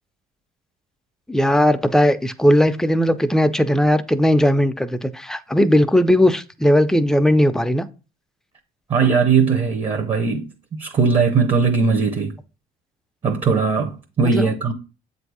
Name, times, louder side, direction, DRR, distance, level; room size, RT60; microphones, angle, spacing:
voice 1, 1.3-7.8 14.3-14.4, equal, 5° left, 0.4 m, -17 dB
voice 2, 8.9-12.4 13.2-14.7, right 5 dB, 35° right, 0.8 m, -19 dB
7.7 x 2.6 x 4.7 m
cardioid pair, 110°, 17 cm